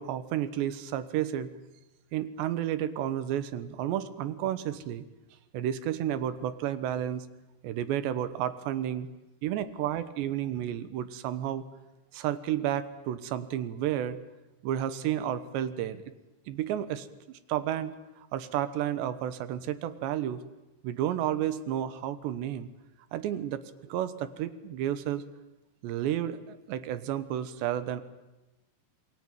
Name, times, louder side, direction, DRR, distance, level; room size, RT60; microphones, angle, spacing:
voice 1, 0.0-1.5 2.1-5.1 5.5-7.3 7.6-9.1 9.4-11.6 12.1-14.2 14.6-16.0 16.5-17.1 17.5-20.4 20.8-22.7 23.1-25.2 25.8-28.0, right 11 dB, 85° right, 13 dB, 3.4 m, -31 dB
27.5 x 20.5 x 9.2 m, 1.0 s
omnidirectional pair, 4.9 m